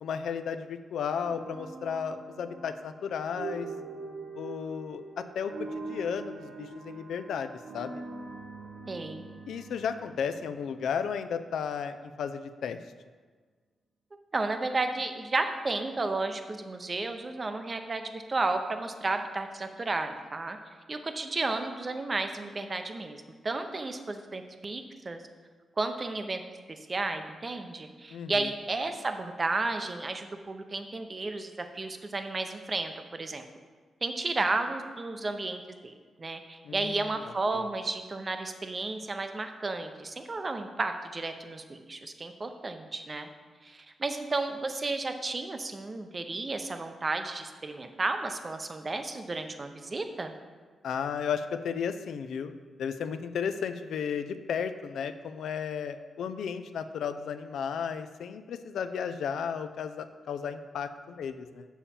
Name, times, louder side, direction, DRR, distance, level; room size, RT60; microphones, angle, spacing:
voice 1, 0.0-3.7 4.4-8.0 9.5-12.8 28.1-28.5 36.6-37.1 37.5-37.6 50.8-52.5 52.8-61.7, left 7 dB, 90° left, 9 dB, 0.4 m, -34 dB
sound 1, 1.1-11.2, right 3 dB, 80° right, 0.9 m, -43 dB
voice 2, 8.9-9.3 14.3-20.6 20.9-23.2 23.4-25.2 25.8-26.4 26.7-33.4 34.0-35.9 36.2-43.3 43.6-50.3, right 3 dB, 25° right, 7 dB, 0.6 m, -33 dB
7.2 x 7.0 x 4.3 m, 1.5 s
wide cardioid pair, 160°, 0 cm